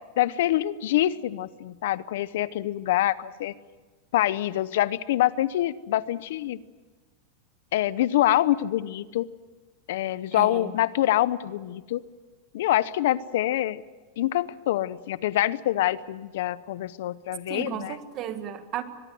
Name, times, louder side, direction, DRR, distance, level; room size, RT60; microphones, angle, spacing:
voice 1, 0.2-3.5 4.1-6.6 7.7-9.3 9.9-12.0 12.5-13.8 14.2-18.0, left 14 dB, 70° left, 0.8 m, -25 dB
voice 2, 10.3-10.7 17.5-18.8, right 10 dB, 35° right, 1.7 m, -34 dB
23.5 x 22.0 x 7.7 m
supercardioid pair, 160°, 0 cm